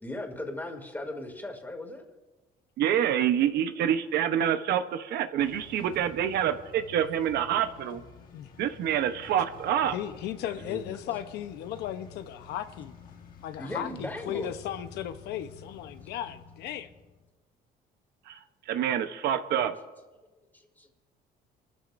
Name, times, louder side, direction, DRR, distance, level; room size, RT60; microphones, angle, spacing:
voice 1, 0.0-2.0 3.8-3.9 5.9-6.1 10.5-11.0 13.6-14.5 20.5-20.9, left 1 dB, 10° left, 2 dB, 2.6 m, -38 dB
voice 2, 2.8-8.0 8.6-10.0 18.3-18.4 18.7-19.7, right 9 dB, 75° right, 9 dB, 0.9 m, -27 dB
sound 1, 5.4-17.3, left 6 dB, 55° left, 1.6 m, -50 dB
voice 3, 9.9-12.9 13.4-16.9, left 10 dB, 80° left, 9 dB, 0.8 m, -36 dB
27.0 x 13.5 x 2.6 m, 1.2 s
cardioid pair, 110°, 17 cm